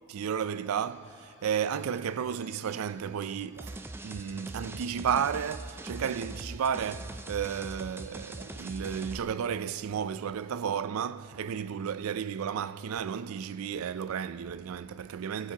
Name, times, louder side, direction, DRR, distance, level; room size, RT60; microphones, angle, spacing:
voice 1, 0.1-15.5, right 7 dB, 90° right, 0.4 m, -33 dB
sound 1, 0.8-13.2, left 1 dB, 70° left, 1.5 m, -61 dB
Drip, 3.5-3.8 5.1-5.4 6.7-7.0 8.3-8.6 10.0-10.2, right 4 dB, 55° right, 0.7 m, -52 dB
sound 2, 3.6-9.2, right 2 dB, 10° right, 0.3 m, -42 dB
21.0 x 13.0 x 2.9 m
head